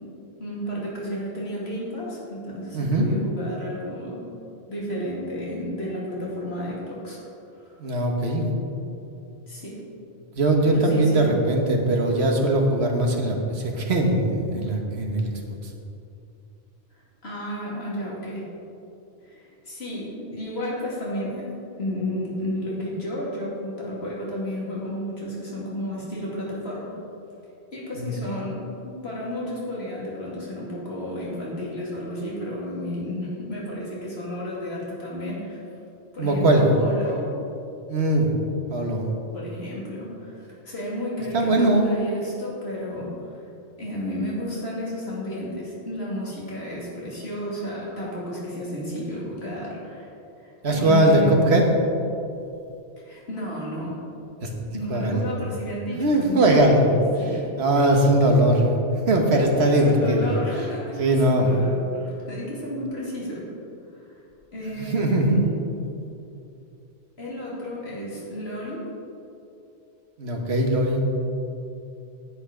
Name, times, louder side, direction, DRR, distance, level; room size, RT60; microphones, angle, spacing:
voice 1, 0.4-4.3 4.7-7.2 7.5-7.8 9.5-9.8 10.6-11.3 17.2-18.4 19.2-26.9 27.7-35.6 36.1-37.3 39.3-43.1 43.8-50.1 50.4-51.4 53.0-54.0 54.7-57.5 59.7-63.5 63.9-64.1 64.5-65.5 67.2-68.8, equal, 65° left, -6 dB, 2.8 m, -32 dB
voice 2, 2.7-3.1 7.8-8.5 10.4-15.3 28.0-28.1 36.2-36.6 37.9-38.3 38.7-39.1 41.3-41.9 50.6-51.6 54.4-54.5 54.9-55.2 55.9-56.9 57.6-60.3 61.0-61.6 64.8-65.4 70.2-71.0, right 1 dB, 70° right, 1 dB, 1.6 m, -20 dB
10.0 x 8.1 x 5.0 m, 2.7 s
omnidirectional pair, 1.1 m